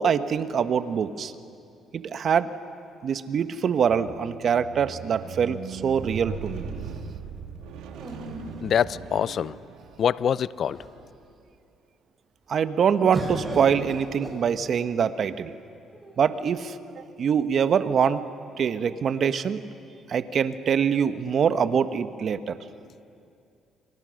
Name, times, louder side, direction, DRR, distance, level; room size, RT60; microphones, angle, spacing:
voice 1, 0.0-1.3 1.9-2.5 3.0-6.7 12.5-15.6 16.2-18.2 18.6-19.6 20.1-22.6, right 7 dB, 55° right, 11 dB, 1.2 m, -24 dB
Squeak, 3.9-10.2 11.0-11.1, right 6 dB, 85° right, 2.0 m, -39 dB
sound 1, 4.8-5.9 7.9-9.4 10.2-10.3 10.6-11.2 13.1-15.0 15.9-16.6, right 1 dB, 30° right, 7.9 m, -38 dB
voice 2, 8.6-9.5 10.0-10.8, left 8 dB, 60° left, 19 dB, 0.5 m, -24 dB
29.5 x 24.5 x 6.5 m, 2.5 s
supercardioid pair, 75°, 0 cm